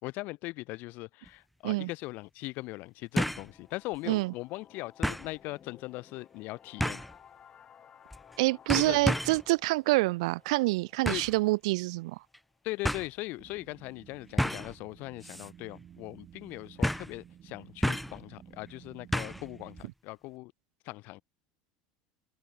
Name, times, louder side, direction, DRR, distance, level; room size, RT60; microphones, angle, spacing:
voice 1, 0.0-7.0 8.7-9.2 11.1-11.2 12.6-20.5 20.8-21.2, left 21 dB, 60° left, 2.5 m, -40 dB
sound 1, 1.3-1.4 3.2-3.5 3.9-4.0 5.0-5.3 6.8-7.2 8.1-8.4 8.7-9.4 11.1-11.4 12.3-12.4 12.8-13.1 14.4-14.8 15.2-15.5 15.8-15.9 16.8-17.2 17.8-18.2 19.1-19.5 19.8-19.9, equal, ahead, 0.6 m, -31 dB
sound 2, 3.1-12.9, left 8 dB, 35° left, 3.4 m, -58 dB
voice 2, 8.4-12.2, right 22 dB, 80° right, 0.4 m, -27 dB
sound 3, 13.4-19.8, right 10 dB, 40° right, 3.0 m, -54 dB
supercardioid pair, 105°, 3 cm